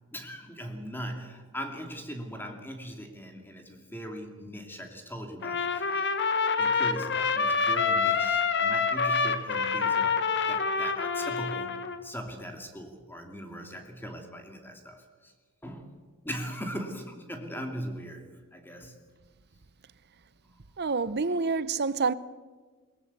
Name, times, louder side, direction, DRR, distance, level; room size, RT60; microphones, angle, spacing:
voice 1, 0.1-6.2 6.6-10.2 10.5-11.7 12.0-15.3 15.6-15.9 16.2-19.0 21.3-21.6, equal, 10° left, 2.6 m, -40 dB
Trumpet, 5.4-12.0, left 5 dB, 55° left, 1.4 m, -27 dB
voice 2, 20.8-22.1, right 4 dB, 50° right, 0.8 m, -27 dB
22.0 x 19.5 x 8.2 m
head